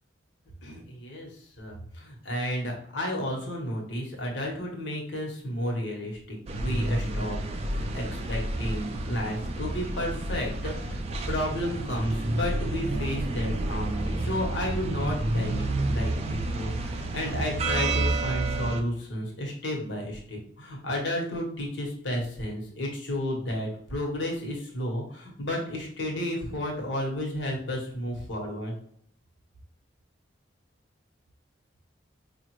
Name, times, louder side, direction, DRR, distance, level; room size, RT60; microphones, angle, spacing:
voice 1, 0.6-11.0 11.3-28.7, left 1 dB, 80° left, -1 dB, 1.1 m, -32 dB
sound 1, 6.5-18.8, right 2 dB, 35° right, 0.3 m, -30 dB
4.7 x 2.4 x 3.0 m, 0.64 s
head